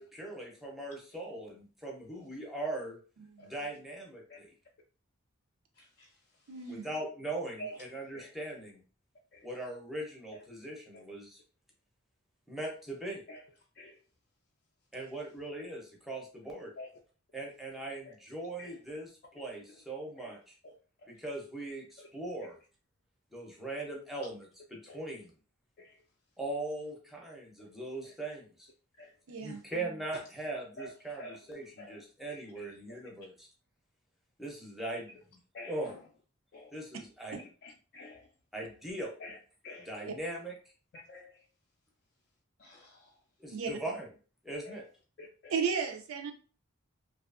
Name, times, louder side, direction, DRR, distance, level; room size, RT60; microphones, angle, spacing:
voice 1, 0.1-3.0 3.4-4.5 6.7-8.8 9.4-11.4 12.5-13.2 14.9-16.7 17.3-20.5 21.1-22.6 23.3-25.3 26.4-28.7 29.4-33.5 34.4-35.2 35.6-35.9 36.7-37.4 38.5-39.1 39.9-40.5 43.4-44.1 44.4-44.8, right 2 dB, ahead, 0.6 m, -40 dB
voice 2, 5.8-6.1 6.6-6.7 7.6-7.8 8.1-8.3 9.3-9.5 10.3-10.4 10.9-11.0 13.3-13.4 13.8-14.0 16.8-16.9 18.0-18.1 18.6-18.8 19.7-19.8 20.2-20.4 20.6-20.7 21.0-21.1 22.0-22.1 24.9-25.0 25.8-26.0 28.0-28.1 29.0-29.1 30.5-30.9 31.2-33.0 35.5-36.0 36.5-36.8 37.6-38.3 39.2-39.4 39.6-39.9 41.1-41.4 42.6-43.1 44.7-44.8 45.2-45.5, left 1 dB, 45° left, 0.3 m, -49 dB
voice 3, 6.5-6.9 29.3-29.6 37.3-37.4 40.1-40.2 43.5-43.7 45.5-46.3, right 6 dB, 80° right, 0.5 m, -34 dB
2.6 x 2.3 x 2.4 m
head